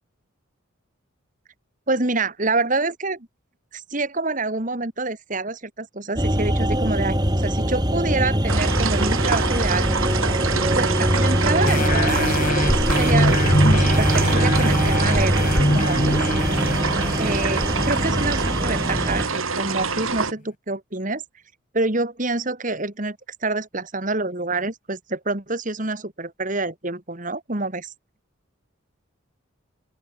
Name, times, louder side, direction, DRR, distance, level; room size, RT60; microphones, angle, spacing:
voice 1, 1.9-3.3 3.7-9.9 10.8-15.3 15.7-16.3 17.2-21.2 21.7-23.2 23.4-27.9, right 3 dB, 40° right, 2.1 m, -27 dB
sound 1, 6.2-19.3, equal, 20° right, 5.1 m, -22 dB
sound 2, 8.5-20.3, right 4 dB, 80° right, 5.0 m, -26 dB
sound 3, 11.7-18.9 19.4-19.5, left 1 dB, 40° left, 3.8 m, -24 dB
open air
head